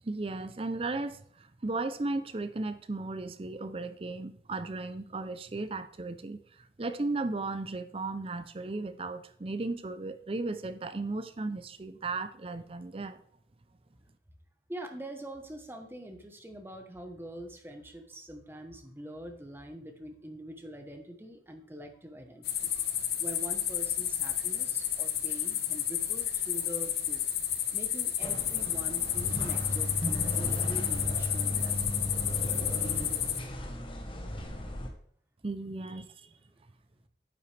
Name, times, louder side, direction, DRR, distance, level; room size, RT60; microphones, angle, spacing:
voice 1, 0.0-6.4 6.8-13.2 35.4-36.3, right 3 dB, 30° right, 11 dB, 0.5 m, -35 dB
voice 2, 14.7-22.7 23.2-31.9 36.5-36.6, right 1 dB, 15° right, 4 dB, 1.0 m, -44 dB
sound 1, 22.4-33.4, left 11 dB, 60° left, 0.8 m, -31 dB
sound 2, 28.2-34.9, left 1 dB, 30° left, 1.2 m, -35 dB
9.3 x 8.4 x 3.4 m, 0.62 s
head